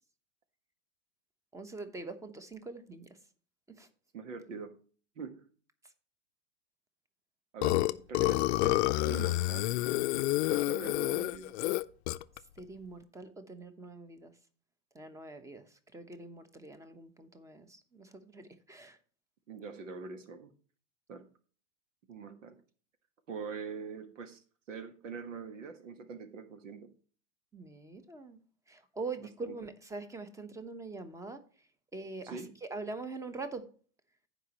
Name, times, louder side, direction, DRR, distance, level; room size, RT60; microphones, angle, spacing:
voice 1, 1.5-3.1 3.8-3.9 12.6-14.3 14.9-15.6 15.9-19.0 27.5-28.4 28.7-31.4 31.9-33.7, right 3 dB, 10° right, 10 dB, 1.0 m, -43 dB
voice 2, 4.1-4.8 5.1-5.4 7.5-9.9 10.5-11.7 19.5-20.5 21.1-21.2 22.1-22.6 23.3-26.9 29.4-29.6 32.2-32.5, right 5 dB, 90° right, 10 dB, 1.5 m, -44 dB
Burping eructation, 7.6-12.4, left 17 dB, 60° left, 0.6 m, -29 dB
15.5 x 5.3 x 3.0 m, 0.41 s
hypercardioid pair, 120°, 37 cm